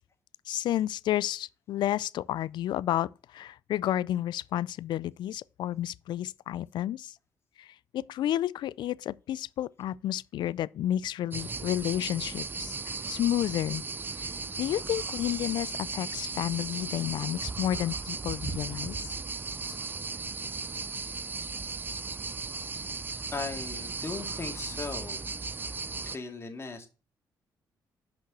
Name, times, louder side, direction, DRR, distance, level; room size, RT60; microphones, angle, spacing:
voice 1, 0.5-7.1 7.6-13.8 14.2-14.3 14.6-19.1 19.6-19.8, left 12 dB, 75° left, 0.3 m, -31 dB
sound 1, 11.3-26.2, right 4 dB, 25° right, 0.4 m, -36 dB
voice 2, 23.3-25.3 26.1-26.9, left 4 dB, 35° left, 2.2 m, -38 dB
6.1 x 5.3 x 6.8 m
cardioid pair, 80°, 8 cm